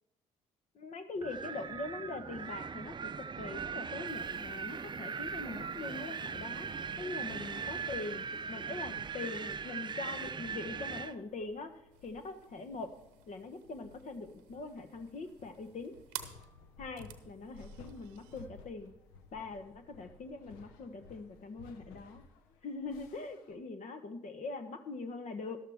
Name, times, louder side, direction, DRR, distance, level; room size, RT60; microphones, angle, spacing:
voice 1, 0.7-3.1 3.4-6.7 7.0-11.7 12.0-12.9 13.3-15.9 16.8-18.9 19.3-22.2 22.6-25.6, left 3 dB, 55° left, 9 dB, 1.2 m, -42 dB
Wind, 1.2-11.1, right 6 dB, 30° right, 0.6 m, -40 dB
sound 1, 4.1-23.6, left 4 dB, 85° left, 0.9 m, -58 dB
sound 2, 11.9-18.5, right 13 dB, 85° right, 0.8 m, -52 dB
12.5 x 12.0 x 3.6 m, 0.86 s
hypercardioid pair, 55°, 15 cm